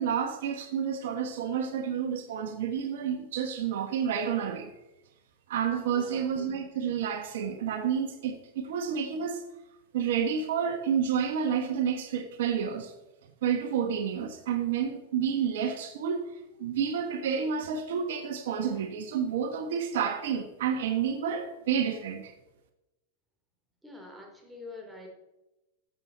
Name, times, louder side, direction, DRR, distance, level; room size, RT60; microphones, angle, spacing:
voice 1, 0.0-4.7 5.5-9.4 9.9-12.9 13.4-16.3 16.6-22.3, right 7 dB, 70° right, 1.2 m, -30 dB
voice 2, 5.9-6.5 23.8-25.1, left 2 dB, 5° right, 3.3 m, -46 dB
14.0 x 7.4 x 4.0 m
hypercardioid pair, 110°, 0 cm